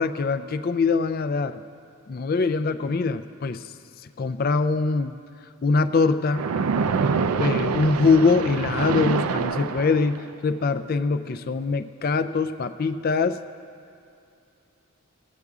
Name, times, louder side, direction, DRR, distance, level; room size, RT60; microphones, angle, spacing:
voice 1, 0.0-1.6 2.1-3.6 4.2-5.2 5.6-6.5 7.4-13.4, left 4 dB, 40° left, 11 dB, 0.4 m, -23 dB
Splash splatter, 6.3-10.3, right 5 dB, 85° right, 0.4 m, -25 dB
18.5 x 8.0 x 3.6 m, 2.6 s
head